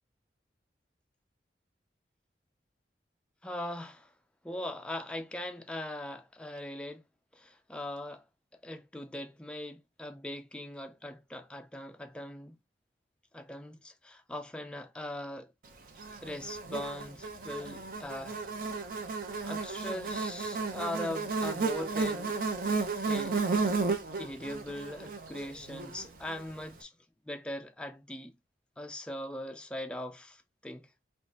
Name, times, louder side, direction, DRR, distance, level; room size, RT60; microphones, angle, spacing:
voice 1, 3.4-4.1 4.4-7.0 7.3-8.2 8.5-12.6 13.3-15.5 16.2-18.4 19.1-19.2 19.4-22.3 23.1-23.7 24.2-26.9 27.3-28.3 28.8-30.9, left 1 dB, 5° left, 0.3 m, -40 dB
Buzz, 16.0-26.4, right 4 dB, 50° right, 0.6 m, -33 dB
3.5 x 3.0 x 2.7 m
head